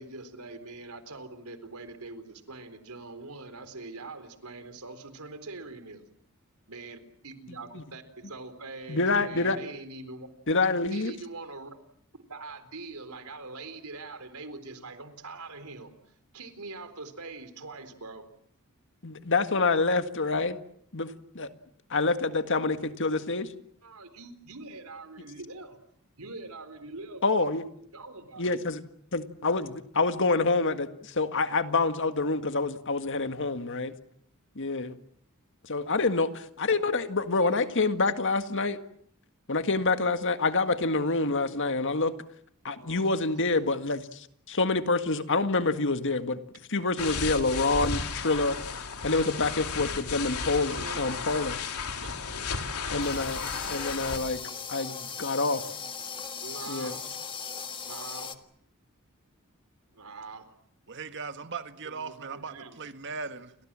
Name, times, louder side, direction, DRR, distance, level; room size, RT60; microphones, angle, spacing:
voice 1, 0.0-6.0 6.7-10.3 10.9-11.7 12.3-15.9 16.3-18.2 23.8-25.8 26.2-27.5 27.9-28.6 42.8-43.1 50.5-51.1 56.4-57.1 57.9-58.4 59.9-60.5 61.8-62.8, right 3 dB, 80° right, 10 dB, 4.0 m, -43 dB
voice 2, 8.9-9.6 10.5-11.1 19.0-20.6 20.9-21.1 21.3-21.5 21.9-23.5 27.2-27.6 28.4-28.8 29.1-33.9 34.5-35.0 35.6-38.8 39.5-42.1 42.6-46.4 46.7-48.6 49.0-51.6 52.9-53.4 53.7-54.4 54.7-55.6 56.7-56.9, left 3 dB, 60° left, 9 dB, 1.8 m, -27 dB
sound 1, 47.0-54.2, left 5 dB, 90° left, 3.2 m, -34 dB
sound 2, 53.0-58.4, left 6 dB, 20° left, 1.7 m, -38 dB
voice 3, 60.9-63.5, right 5 dB, 55° right, 9 dB, 1.9 m, -38 dB
30.0 x 24.5 x 7.6 m, 0.68 s
head